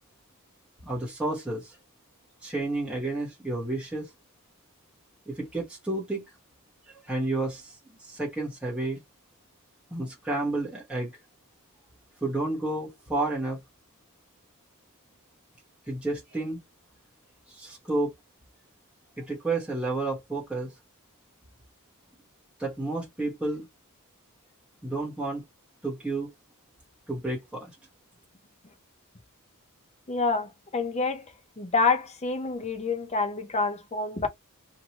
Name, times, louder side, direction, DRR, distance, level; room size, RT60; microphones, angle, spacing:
voice 1, 0.9-1.8 2.4-4.1 5.3-6.2 6.9-9.0 9.9-11.1 12.2-13.6 15.9-16.6 17.5-18.1 19.2-20.7 22.6-23.7 24.8-25.4 25.8-26.3 27.1-27.7, right 2 dB, 5° right, 1.1 m, -31 dB
voice 2, 30.1-31.2 31.6-34.3, left 4 dB, 30° left, 0.8 m, -27 dB
2.9 x 2.7 x 2.9 m
head